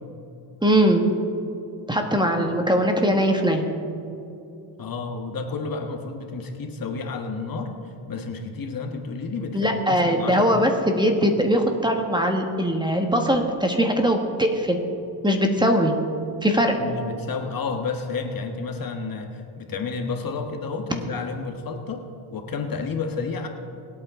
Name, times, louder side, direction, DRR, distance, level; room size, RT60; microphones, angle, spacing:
voice 1, 0.6-1.0 1.9-3.6 9.5-14.8 15.2-15.9 16.4-16.8, equal, 10° right, 3 dB, 1.5 m, -21 dB
voice 2, 4.8-7.7 8.1-10.5 16.8-22.0 22.3-23.5, left 4 dB, 45° left, 4 dB, 1.5 m, -31 dB
22.5 x 8.7 x 3.8 m, 2.6 s
cardioid pair, 85°, 50 cm